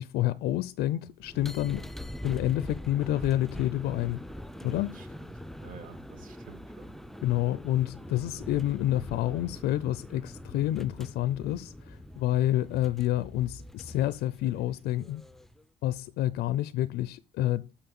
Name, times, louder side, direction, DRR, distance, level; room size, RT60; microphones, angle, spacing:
voice 1, 0.0-1.9 2.2-4.2 4.6-4.9 7.2-15.2 15.8-17.8, left 14 dB, 80° left, 0.5 m, -28 dB
sound 1, 1.2-15.6, equal, ahead, 0.5 m, -43 dB
voice 2, 4.6-5.3 5.6-6.9, right 5 dB, 55° right, 2.6 m, -49 dB
6.5 x 5.7 x 6.9 m
cardioid pair, 110°, 17 cm